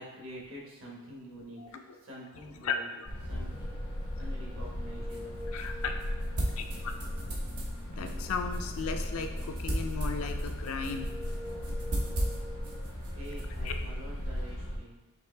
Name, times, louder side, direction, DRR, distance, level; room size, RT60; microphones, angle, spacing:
voice 1, 0.0-2.9 3.2-5.4 13.1-15.0, equal, 65° right, -4 dB, 1.3 m, -47 dB
voice 2, 2.6-3.1 3.3-3.5 5.5-5.9 6.6-6.9 7.9-11.1 13.6-13.7, left 5 dB, 70° left, 6 dB, 0.4 m, -36 dB
sound 1, 3.0-14.8, left 1 dB, 85° left, 1.0 m, -37 dB
sound 2, 3.5-10.2 10.6-12.8, left 1 dB, 35° right, 0.6 m, -48 dB
sound 3, 4.6-14.5, right 1 dB, 85° right, 1.0 m, -39 dB
5.1 x 3.2 x 3.2 m, 1.1 s
head